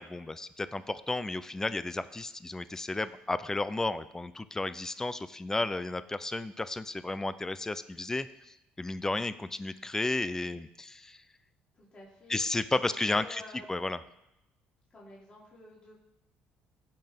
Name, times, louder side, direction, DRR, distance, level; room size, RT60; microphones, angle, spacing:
voice 1, 0.0-11.2 12.3-13.4 13.7-14.0, left 2 dB, 15° left, 14 dB, 0.5 m, -33 dB
voice 2, 11.7-12.4 12.8-13.6 14.9-16.0, left 2 dB, 30° left, -6 dB, 3.1 m, -51 dB
16.0 x 5.5 x 3.6 m, 0.88 s
supercardioid pair, 85°, 4 cm